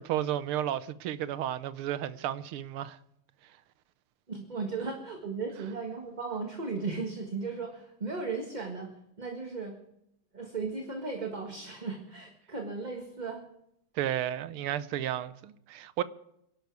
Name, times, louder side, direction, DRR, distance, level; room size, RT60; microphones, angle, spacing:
voice 1, 0.0-3.0 13.9-16.0, right 11 dB, 85° right, 1.7 m, -32 dB
voice 2, 4.3-8.9 9.2-9.8 10.3-13.4, right 4 dB, 20° right, 1.6 m, -36 dB
25.0 x 12.0 x 4.7 m
omnidirectional pair, 2.3 m